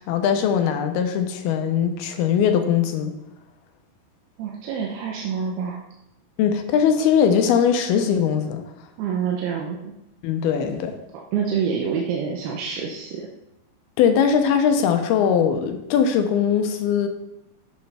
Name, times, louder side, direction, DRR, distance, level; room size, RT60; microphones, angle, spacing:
voice 1, 0.0-3.1 6.4-8.6 10.2-10.9 14.0-17.1, left 7 dB, 85° left, 6 dB, 2.7 m, -20 dB
voice 2, 4.4-5.8 9.0-9.8 11.3-13.2, right 7 dB, 90° right, -1 dB, 2.8 m, -26 dB
9.3 x 7.7 x 3.4 m, 0.88 s
omnidirectional pair, 4.4 m